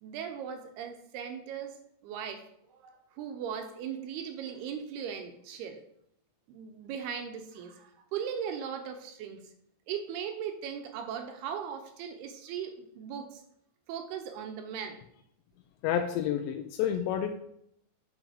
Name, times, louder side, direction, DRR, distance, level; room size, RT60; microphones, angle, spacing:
voice 1, 0.0-1.8 2.0-5.8 6.5-9.4 9.9-13.4 13.9-15.0, right 7 dB, 75° right, 6 dB, 2.7 m, -38 dB
voice 2, 15.8-17.3, left 9 dB, 85° left, 5 dB, 2.8 m, -29 dB
10.0 x 6.4 x 5.1 m, 0.72 s
omnidirectional pair, 5.1 m